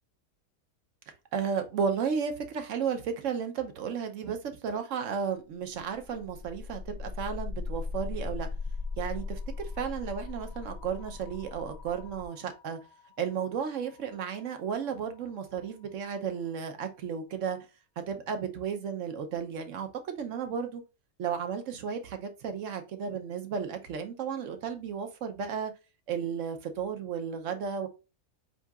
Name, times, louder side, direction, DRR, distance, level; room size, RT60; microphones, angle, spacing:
voice 1, 1.3-8.5 9.0-12.8 13.2-17.6 18.1-20.8 21.2-25.7 26.1-27.9, right 7 dB, 60° right, 1.0 m, -33 dB
sound 1, 5.7-15.6, left 4 dB, 80° left, 0.3 m, -39 dB
8.0 x 2.8 x 2.3 m
omnidirectional pair, 1.6 m